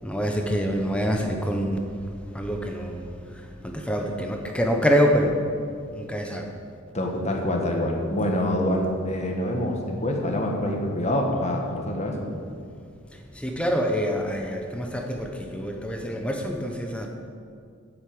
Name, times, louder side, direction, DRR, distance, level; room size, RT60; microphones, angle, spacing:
voice 1, 0.0-1.8 2.3-3.0 3.6-5.3 5.9-6.5 13.4-17.1, equal, 5° left, 2 dB, 0.9 m, -25 dB
voice 2, 6.9-12.2, left 1 dB, 30° left, 1 dB, 1.6 m, -26 dB
9.3 x 8.0 x 8.6 m, 2.2 s
head